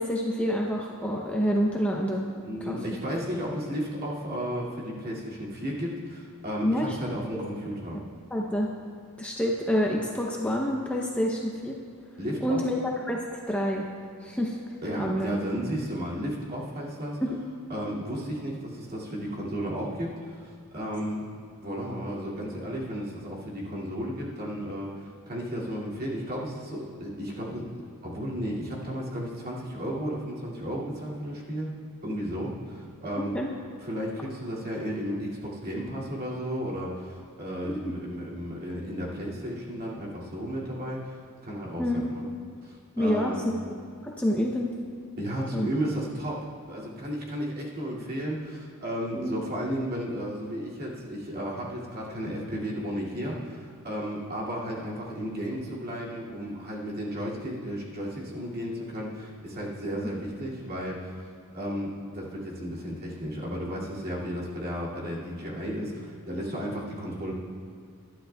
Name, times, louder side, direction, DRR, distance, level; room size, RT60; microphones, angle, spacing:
voice 1, 0.0-2.3 2.6-2.8 6.6-7.0 7.3-7.4 8.3-8.7 9.2-11.8 12.4-12.8 13.1-13.9 14.2-14.6 15.0-15.4 17.2-17.4 33.2-33.5 37.6-37.9 41.8-42.1 43.0-43.3 44.0-44.7 45.5-45.7 49.1-49.3, equal, 5° left, -2 dB, 0.7 m, -27 dB
voice 2, 2.4-8.0 12.2-12.6 14.8-17.2 17.7-21.2 21.6-27.6 28.0-31.7 32.0-33.3 33.8-42.2 42.6-43.4 45.2-61.2 61.5-67.3, equal, 45° right, -5 dB, 2.4 m, -33 dB
20.0 x 12.0 x 2.3 m, 2.3 s
head